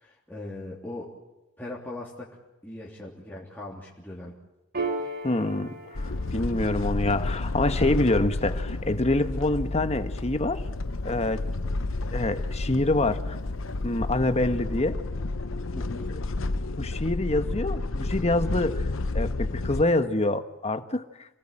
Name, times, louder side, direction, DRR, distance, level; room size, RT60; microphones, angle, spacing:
voice 1, 0.0-1.1 1.6-2.3 2.6-4.3 15.7-16.1, left 2 dB, 10° left, -5 dB, 3.2 m, -39 dB
Piano, 4.7-11.7, right 2 dB, 50° right, 3.3 m, -39 dB
voice 2, 5.2-10.6 11.0-11.4 12.1-13.3 13.8-15.0 16.8-18.7 19.1-21.0, left 2 dB, 35° left, 9 dB, 1.3 m, -26 dB
sound 1, 5.9-19.8, left 2 dB, 85° left, 0.9 m, -31 dB
27.0 x 18.5 x 8.9 m, 0.94 s
head